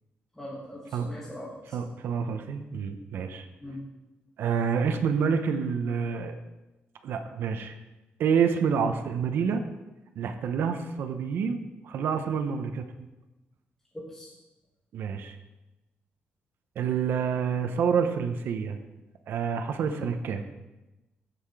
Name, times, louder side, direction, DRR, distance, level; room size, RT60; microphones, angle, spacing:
voice 1, 0.3-1.9 3.6-3.9 13.9-14.3 19.9-20.0, equal, 10° left, -5 dB, 1.5 m, -41 dB
voice 2, 1.7-3.5 4.4-6.3 7.0-7.8 8.2-9.6 10.1-13.1 14.9-15.4 16.8-18.8 19.3-20.4, right 6 dB, 65° right, 6 dB, 0.9 m, -28 dB
15.5 x 5.9 x 4.8 m, 1.0 s
wide cardioid pair, 175°, 4 cm